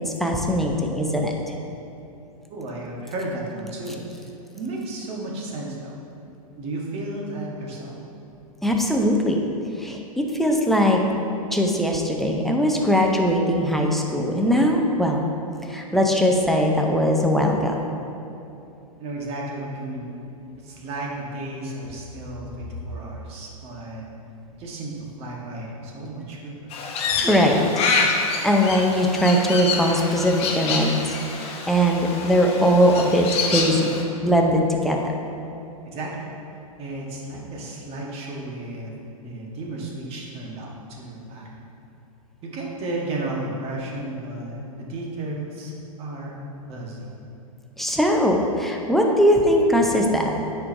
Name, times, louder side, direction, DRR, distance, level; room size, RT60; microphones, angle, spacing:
voice 1, 0.2-1.3 8.6-9.4 9.8-10.0 10.3-11.0 11.5-15.2 15.7-17.8 27.1-27.7 28.1-33.9 34.2-35.0 47.8-50.3, equal, ahead, 0 dB, 0.5 m, -20 dB
voice 2, 2.5-4.0 4.5-6.0 6.6-8.0 19.0-20.1 20.6-24.1 24.5-26.7 35.9-36.2 36.8-38.9 39.2-41.5 42.4-45.7 46.0-46.4 46.7-47.1, right 2 dB, 35° right, -2 dB, 1.3 m, -33 dB
Crow, 26.7-34.0, left 4 dB, 30° left, 0.8 m, -27 dB
9.5 x 4.8 x 2.6 m, 2.8 s
hypercardioid pair, 120°, 19 cm